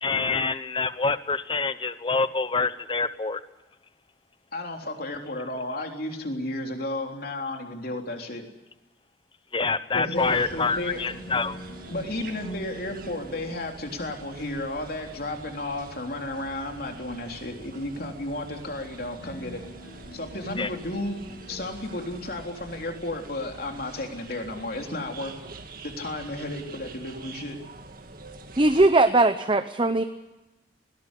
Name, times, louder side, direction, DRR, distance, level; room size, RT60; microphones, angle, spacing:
voice 1, 0.0-3.4 9.5-11.6 20.6-20.7, left 4 dB, 25° left, 14 dB, 0.9 m, -26 dB
voice 2, 4.5-8.4 9.9-11.0 11.9-19.7 20.1-21.2 21.5-25.3 25.8-27.6, left 1 dB, 50° left, 3 dB, 3.6 m, -33 dB
sound 1, 9.9-21.7, right 1 dB, 85° left, 6.0 m, -44 dB
sound 2, 10.1-28.9, right 3 dB, 50° right, 1.9 m, -45 dB
voice 3, 28.6-30.0, right 2 dB, 25° right, 9 dB, 0.8 m, -19 dB
21.0 x 18.0 x 9.8 m, 1.0 s
head